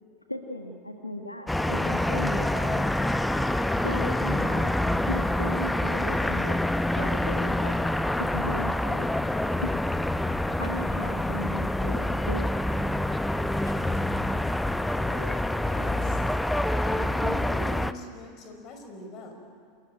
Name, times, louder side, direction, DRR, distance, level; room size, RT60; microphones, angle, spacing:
voice 1, 0.3-2.9 3.8-4.7 5.1-6.6 6.9-7.7 8.2-9.1 9.6-9.7 10.6-12.5 13.6-13.7, left 1 dB, 90° left, 4 dB, 1.4 m, -37 dB
sound 1, 1.5-17.9, left 1 dB, 5° left, 0.7 m, -26 dB
voice 2, 15.0-16.2 16.8-19.4, left 2 dB, 40° left, 4 dB, 5.3 m, -41 dB
27.5 x 16.0 x 9.6 m, 2.2 s
figure-of-eight pair, 80°, 0 cm